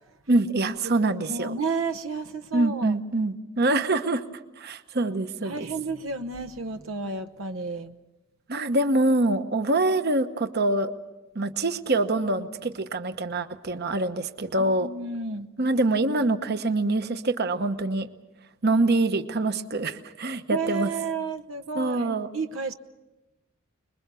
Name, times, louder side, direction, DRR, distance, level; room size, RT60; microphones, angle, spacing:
voice 1, 0.3-1.6 2.5-4.2 4.6-5.7 8.5-10.9 11.3-14.9 15.6-18.1 18.6-20.9 21.7-22.3, right 2 dB, 55° right, 9 dB, 1.0 m, -25 dB
voice 2, 1.3-2.9 5.4-8.0 14.6-15.5 20.5-22.7, right 4 dB, 85° right, 8 dB, 1.0 m, -32 dB
26.0 x 21.5 x 6.9 m, 1.1 s
head